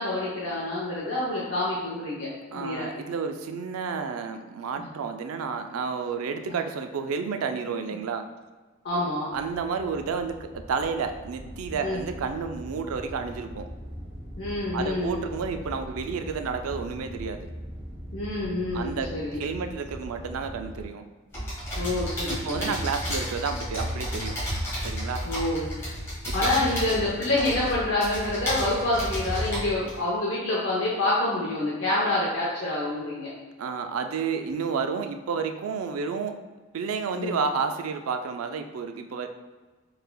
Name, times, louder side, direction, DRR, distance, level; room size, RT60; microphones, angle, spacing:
voice 1, 0.0-2.9 4.8-4.9 6.5-6.6 8.8-9.3 11.8-12.0 14.4-15.2 18.1-19.4 21.8-22.7 25.2-25.7 26.3-33.3 37.1-37.4, left 2 dB, 65° left, -6 dB, 0.7 m, -27 dB
voice 2, 2.5-8.2 9.3-13.7 14.7-17.5 18.7-19.1 19.4-21.0 22.3-24.3 24.8-25.2 26.3-26.5 33.6-36.4 36.7-39.3, right 5 dB, 85° right, 7 dB, 0.4 m, -31 dB
sound 1, 9.3-20.9, equal, 25° right, 0.6 m, -41 dB
sound 2, 21.3-30.0, equal, 10° left, 1.4 m, -32 dB
4.6 x 3.3 x 2.2 m, 1.3 s
head